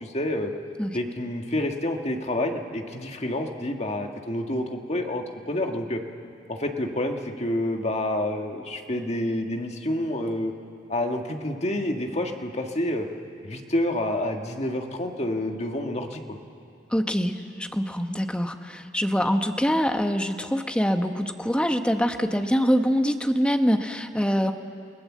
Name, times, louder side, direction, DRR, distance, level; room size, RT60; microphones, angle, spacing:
voice 1, 0.0-0.5 0.9-6.0 6.5-10.5 10.9-13.1 13.4-16.2, left 1 dB, 40° left, 3 dB, 1.7 m, -28 dB
voice 2, 16.9-24.5, equal, 5° left, 6 dB, 1.0 m, -24 dB
29.0 x 18.0 x 7.4 m, 2.4 s
head